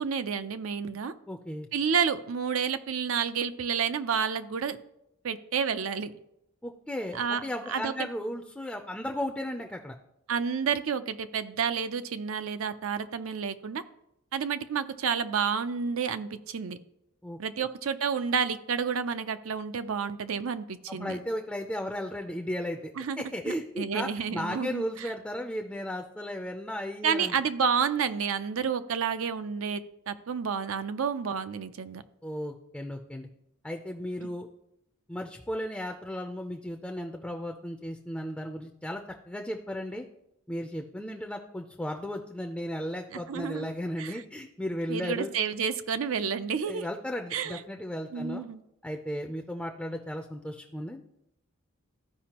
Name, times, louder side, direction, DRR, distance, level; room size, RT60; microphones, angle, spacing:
voice 1, 0.0-1.1 1.7-4.8 5.2-6.1 7.1-7.4 7.7-8.1 10.3-13.8 14.3-16.8 17.4-21.2 23.0-25.1 27.0-32.0 43.3-43.7 44.0-44.1 44.9-46.8 47.3-47.6 48.1-48.6, right 6 dB, 70° right, 11 dB, 0.5 m, -30 dB
voice 2, 1.3-1.7 6.6-9.9 17.2-17.4 20.9-22.9 23.2-27.4 32.2-33.3 33.6-34.5 35.1-40.1 40.5-45.3 46.6-48.4 48.8-51.0, equal, 5° left, 3 dB, 0.4 m, -35 dB
14.0 x 5.1 x 2.9 m, 0.82 s
head